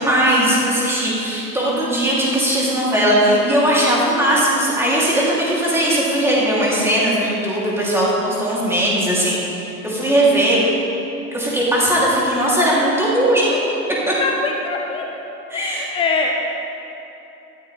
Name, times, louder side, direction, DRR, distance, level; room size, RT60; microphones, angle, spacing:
voice 1, 0.0-9.4 9.8-10.6 11.3-13.6 14.1-14.2 15.5-15.8, right 1 dB, 5° right, -7 dB, 3.6 m, -18 dB
voice 2, 14.1-15.1 15.5-16.3, left 4 dB, 10° left, 2 dB, 0.5 m, -23 dB
16.0 x 13.5 x 3.6 m, 3.0 s
figure-of-eight pair, 100°, 48 cm